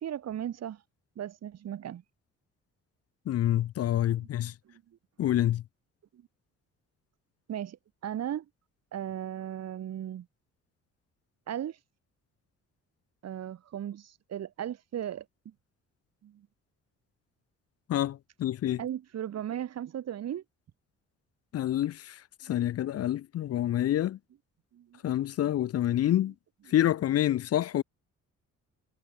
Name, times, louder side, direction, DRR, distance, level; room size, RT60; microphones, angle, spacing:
voice 1, 0.0-0.8 1.2-2.0 4.6-4.8 6.1-6.2 7.5-8.4 8.9-10.3 11.5-11.8 13.2-15.5 16.2-16.5 18.8-20.4 22.4-22.7 24.7-25.0, right 10 dB, 60° right, 1.4 m, -37 dB
voice 2, 3.3-4.5 5.2-5.6 17.9-18.8 21.5-24.2 25.0-26.3 26.7-27.8, left 12 dB, 55° left, 0.5 m, -27 dB
cardioid pair, 90°, 30 cm